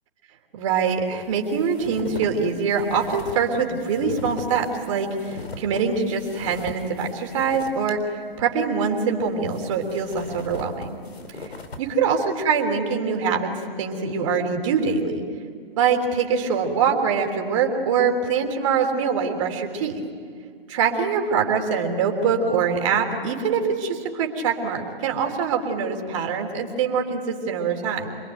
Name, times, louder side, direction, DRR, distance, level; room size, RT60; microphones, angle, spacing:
voice 1, 0.5-10.9 11.4-11.5 11.8-13.5 13.8-15.2 15.8-20.0 20.7-28.1, right 6 dB, 30° right, 2 dB, 3.5 m, -24 dB
sound 1, 1.2-7.9 8.3-8.4 9.3-11.9, left 2 dB, 90° left, 3.7 m, -39 dB
27.0 x 22.0 x 9.2 m, 2.2 s
hypercardioid pair, 160°, 30 cm